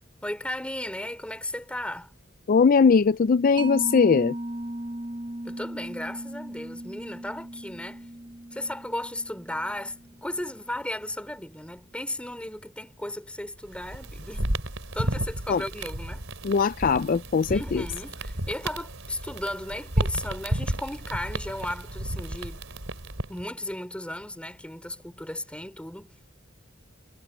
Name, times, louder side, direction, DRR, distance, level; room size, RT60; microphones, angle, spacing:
voice 1, 0.2-2.1 5.4-8.0 8.5-14.5 14.9-16.2 17.5-22.6 23.3-26.1, left 1 dB, 5° left, 5.1 m, -35 dB
voice 2, 2.5-4.3 15.5-15.6 16.4-17.8, left 5 dB, 45° left, 0.4 m, -20 dB
Mallet percussion, 3.6-10.6, right 1 dB, 25° right, 0.8 m, -37 dB
sound 1, 13.7-23.5, right 1 dB, 75° right, 3.9 m, -32 dB
head